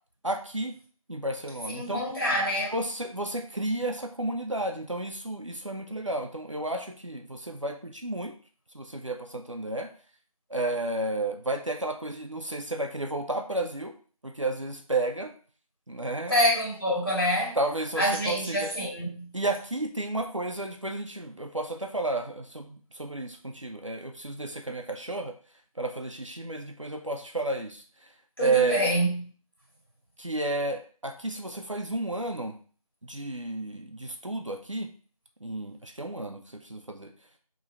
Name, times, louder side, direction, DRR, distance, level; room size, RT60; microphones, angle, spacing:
voice 1, 0.2-0.8 1.1-2.1 2.7-8.3 8.7-9.9 10.5-13.9 14.2-15.3 15.9-16.3 17.6-18.7 19.3-25.3 25.8-27.8 28.4-28.9 30.2-32.6 33.0-34.9 35.4-37.1, right 2 dB, 55° right, 0.6 m, -32 dB
voice 2, 1.7-2.8 16.3-17.6 18.0-19.3 28.4-29.3, equal, 40° left, 1.9 m, -26 dB
3.7 x 3.0 x 4.2 m
figure-of-eight pair, 180°, 19 cm